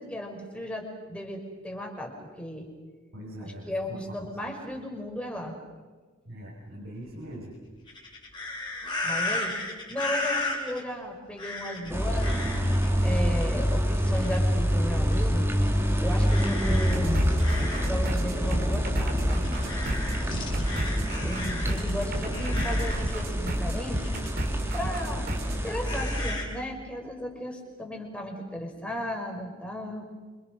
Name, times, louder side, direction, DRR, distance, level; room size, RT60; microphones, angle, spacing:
voice 1, 0.0-2.7 3.4-5.6 9.0-9.6 9.9-12.4 13.0-15.5 16.0-17.4 17.8-19.5 21.2-24.0 24.7-30.1, equal, 5° left, 1 dB, 5.3 m, -35 dB
voice 2, 3.1-4.2 6.3-7.7 20.3-21.2 21.6-21.7 25.1-25.2, equal, 65° right, -4 dB, 6.0 m, -42 dB
sound 1, 7.9-10.8 11.4-11.9 12.2-12.9 14.1-14.6 15.1-15.3 16.3-18.0 18.4-18.5 19.4-21.9 22.3-23.2 24.0-24.3 25.8-26.4, left 2 dB, 20° left, 6.2 m, -34 dB
sound 2, 11.9-26.3, equal, 10° right, 3.2 m, -26 dB
sound 3, 16.7-25.6, right 1 dB, 45° right, 4.3 m, -34 dB
27.5 x 27.5 x 6.4 m, 1.4 s
head